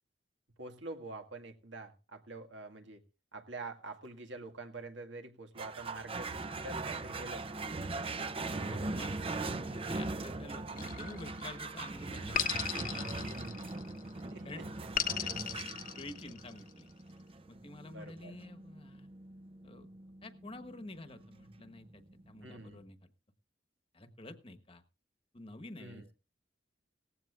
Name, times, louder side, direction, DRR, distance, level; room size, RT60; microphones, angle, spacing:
voice 1, 0.6-3.0 3.3-6.3 6.6-7.8 10.7-11.0 13.3-13.8 14.3-14.6 17.8-18.4 22.4-22.8 25.8-26.0, right 2 dB, 80° right, 2.0 m, -46 dB
sound 1, 5.6-22.3, right 3 dB, 30° right, 0.6 m, -40 dB
voice 2, 8.6-13.5 14.4-14.7 15.2-16.9 17.5-19.1 19.6-19.9 20.2-23.0 23.9-24.8 25.3-26.1, left 2 dB, 30° left, 1.2 m, -49 dB
sound 2, 10.8-11.6 12.3-14.0 15.0-16.6, left 8 dB, 50° left, 1.1 m, -36 dB
17.5 x 15.0 x 2.4 m
head